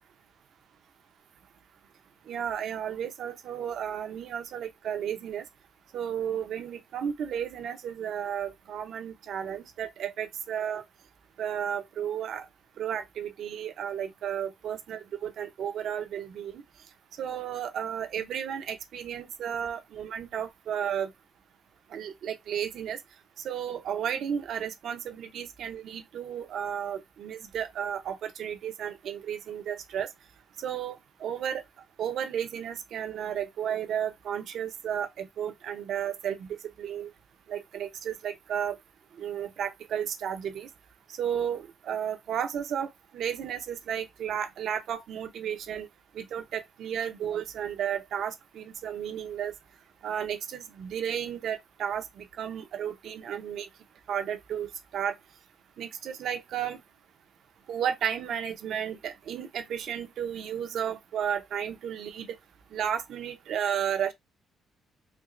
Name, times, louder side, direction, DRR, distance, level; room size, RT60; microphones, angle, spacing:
voice 1, 2.3-5.4 5.9-10.8 11.4-12.4 12.8-16.5 17.2-21.1 21.9-23.0 23.4-30.1 30.6-31.6 32.0-36.5 36.8-37.1 37.5-38.8 39.2-40.7 41.2-42.9 43.1-45.9 46.1-49.5 50.0-53.7 54.1-55.1 55.8-56.8 57.7-62.3 62.7-64.1, right 9 dB, 70° right, 0.7 m, -33 dB
4.5 x 2.1 x 2.5 m
cardioid pair, 90°, 0 cm